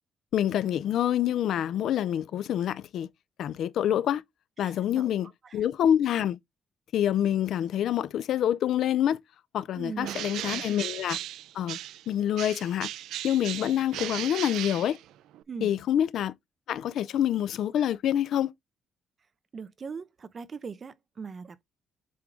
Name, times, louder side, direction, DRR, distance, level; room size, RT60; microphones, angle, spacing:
voice 1, 0.3-3.1 3.4-4.2 4.6-6.4 6.9-9.2 9.5-11.2 11.5-11.8 12.1-12.9 13.2-15.0 15.6-16.3 16.7-18.5, left 10 dB, 60° left, 0.5 m, -26 dB
voice 2, 4.6-5.1 9.8-10.6 15.5-15.7 19.5-21.6, right 5 dB, 30° right, 0.7 m, -40 dB
Bird, 10.0-12.1 12.4-15.4, right 13 dB, 90° right, 0.4 m, -37 dB
7.7 x 3.8 x 3.7 m
cardioid pair, 160°, 0 cm